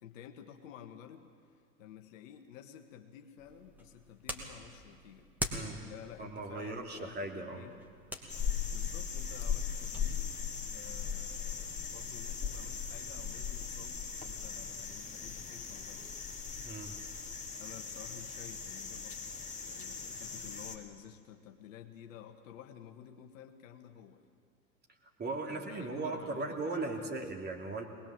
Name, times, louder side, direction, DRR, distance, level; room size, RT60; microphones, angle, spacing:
voice 1, 0.0-1.3 1.8-5.3 5.8-7.8 8.7-10.4 10.7-16.1 17.6-19.4 19.6-24.2 25.2-27.1, left 9 dB, 60° left, 6 dB, 1.6 m, -52 dB
sound 1, 3.4-10.1, equal, 5° right, 2.6 m, -45 dB
voice 2, 6.2-7.7 16.6-17.0 25.2-27.8, right 3 dB, 20° right, 1 dB, 2.9 m, -38 dB
sound 2, 8.3-20.8, left 6 dB, 15° left, 2.6 m, -39 dB
22.0 x 20.5 x 7.6 m, 2.1 s
figure-of-eight pair, 80°, 44 cm